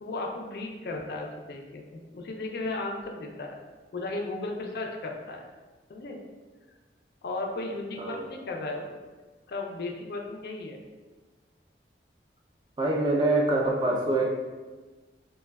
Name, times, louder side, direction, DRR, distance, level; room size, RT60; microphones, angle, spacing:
voice 1, 0.0-3.6 3.9-5.4 5.9-6.2 7.2-9.0 9.5-10.8, left 2 dB, 60° left, 1 dB, 0.3 m, -35 dB
voice 2, 12.8-14.4, right 2 dB, 25° right, -1 dB, 0.3 m, -25 dB
3.2 x 2.2 x 2.2 m, 1.3 s
head